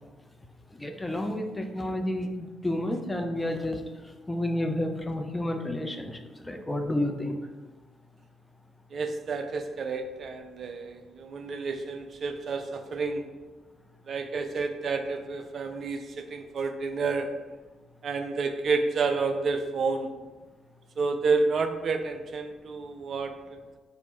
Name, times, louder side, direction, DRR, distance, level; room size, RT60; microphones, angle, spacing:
voice 1, 0.7-7.4, left 1 dB, 15° left, 4 dB, 0.4 m, -31 dB
voice 2, 8.9-13.3 14.1-17.4 18.0-20.2 21.0-23.8, right 4 dB, 50° right, 7 dB, 0.3 m, -30 dB
2.9 x 2.1 x 4.0 m, 1.3 s
hypercardioid pair, 45°, 0 cm